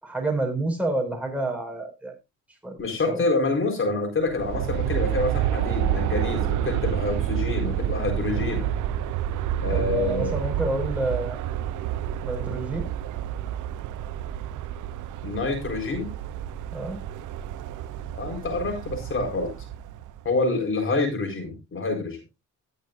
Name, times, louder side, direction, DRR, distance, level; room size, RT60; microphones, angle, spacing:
voice 1, 0.0-2.2 2.6-3.2 8.3-8.7 9.7-11.4 12.2-12.9 16.7-17.0, right 2 dB, 5° right, 0 dB, 5.3 m, -29 dB
voice 2, 2.8-8.7 9.6-10.3 15.2-16.1 18.1-19.5 20.2-22.2, left 3 dB, 45° left, 3 dB, 4.5 m, -27 dB
Aircraft, 4.2-20.3, right 11 dB, 80° right, 0.7 m, -29 dB
19.5 x 6.6 x 2.6 m, 0.24 s
cardioid pair, 90°, 30 cm